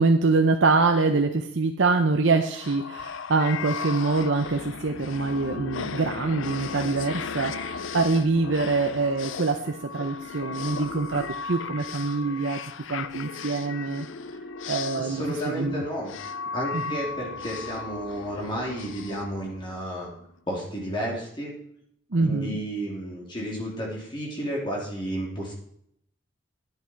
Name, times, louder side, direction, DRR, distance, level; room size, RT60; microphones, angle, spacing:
voice 1, 0.0-12.6 12.9-14.1 14.7-15.8 16.7-16.8 22.1-22.5, right 3 dB, 75° right, 4 dB, 0.8 m, -24 dB
sound 1, 2.4-20.1, left 5 dB, 85° left, 0.6 m, -36 dB
voice 2, 14.9-16.1 16.5-21.5 22.2-25.5, equal, 25° left, -3 dB, 3.4 m, -32 dB
10.5 x 9.9 x 4.6 m, 0.70 s
head